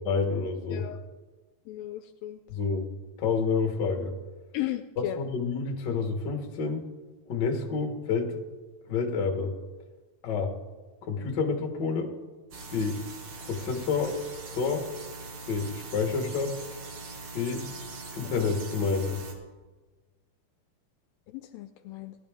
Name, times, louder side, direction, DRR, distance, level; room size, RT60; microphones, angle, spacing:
voice 1, 0.1-0.8 2.5-2.8 3.2-4.1 5.0-6.8 7.3-8.3 8.9-9.5 10.2-10.5 11.0-12.1 12.7-13.0 13.4-14.2 14.5-14.8 15.5-16.5 17.3-17.6 18.1-19.2, left 5 dB, 55° left, 2 dB, 1.2 m, -28 dB
voice 2, 1.7-2.4 4.5-5.2 21.3-22.2, left 14 dB, 80° left, 8 dB, 2.1 m, -35 dB
sound 1, 12.5-19.3, right 3 dB, 55° right, 2.0 m, -42 dB
18.5 x 11.0 x 3.5 m, 1.3 s
omnidirectional pair, 4.4 m